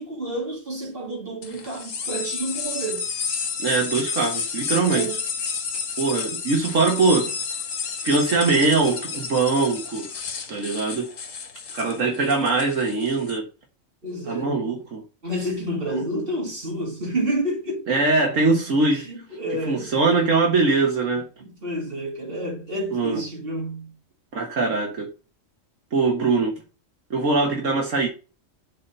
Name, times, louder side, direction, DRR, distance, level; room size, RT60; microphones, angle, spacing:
voice 1, 0.0-3.1 4.9-5.2 14.0-14.7 15.2-17.9 18.9-19.9 21.4-23.9, right 1 dB, 45° right, 2.9 m, -29 dB
sound 1, 1.4-13.4, left 6 dB, 75° left, 1.5 m, -31 dB
voice 2, 3.6-5.1 6.0-7.3 8.0-10.1 10.5-11.1 11.7-13.5 14.3-15.0 15.9-16.0 17.9-19.1 19.7-21.3 22.9-23.2 24.3-25.1 25.9-26.6 27.1-28.1, right 3 dB, 75° right, 1.8 m, -22 dB
7.4 x 4.2 x 5.4 m
omnidirectional pair, 1.3 m